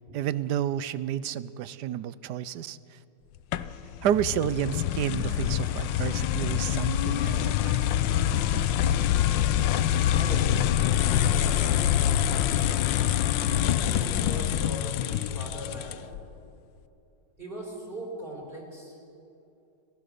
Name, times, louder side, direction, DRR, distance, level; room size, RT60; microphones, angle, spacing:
voice 1, 0.1-2.8 4.0-7.8, right 10 dB, 70° right, 16 dB, 1.2 m, -30 dB
sound 1, 3.5-16.2, left 11 dB, 80° left, 1.4 m, -25 dB
voice 2, 10.1-12.7 13.7-16.1 17.4-19.0, equal, 30° right, -2 dB, 4.2 m, -40 dB
30.0 x 15.5 x 6.8 m, 2.7 s
omnidirectional pair, 2.0 m